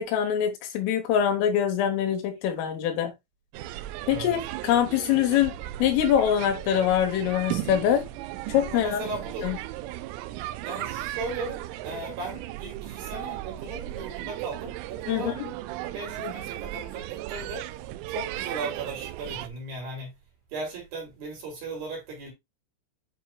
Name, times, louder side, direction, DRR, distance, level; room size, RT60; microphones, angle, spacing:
voice 1, 0.0-3.1 4.1-8.1 8.5-9.0 9.4-9.6 15.1-15.5 16.2-16.3, left 9 dB, 80° left, 3.7 m, -24 dB
sound 1, 3.5-19.5, right 15 dB, 85° right, 2.9 m, -36 dB
voice 2, 4.0-4.3 8.7-9.5 10.6-15.3 15.7-17.7 18.1-20.1 20.5-22.3, right 3 dB, 50° right, 4.2 m, -37 dB
10.0 x 4.5 x 2.3 m
omnidirectional pair, 5.8 m